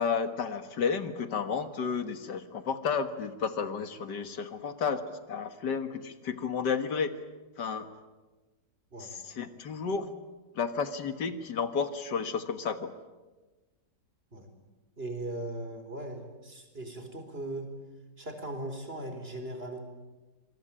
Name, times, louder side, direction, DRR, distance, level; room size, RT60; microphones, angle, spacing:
voice 1, 0.0-7.2 7.6-7.9 9.0-10.1 10.6-12.9, left 6 dB, 75° left, 10 dB, 2.1 m, -32 dB
voice 2, 15.0-17.7 18.2-19.8, right 1 dB, 35° right, 6 dB, 4.4 m, -38 dB
26.5 x 22.5 x 9.0 m, 1.2 s
omnidirectional pair, 1.9 m